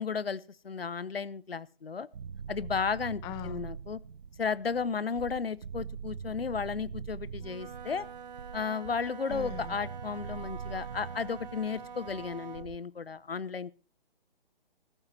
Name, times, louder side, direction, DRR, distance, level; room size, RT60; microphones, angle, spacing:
voice 1, 0.0-2.1 2.5-4.0 4.4-8.0 8.5-13.8, left 5 dB, 75° left, 20 dB, 0.8 m, -34 dB
sound 1, 2.1-12.8, right 6 dB, 65° right, 1.0 m, -43 dB
voice 2, 3.2-3.6 9.3-9.7, left 14 dB, 10° left, 14 dB, 0.6 m, -41 dB
Wind instrument woodwind instrument, 7.3-12.8, right 6 dB, 45° right, 1.3 m, -46 dB
14.5 x 13.5 x 4.4 m, 0.36 s
figure-of-eight pair, 135°, 30 cm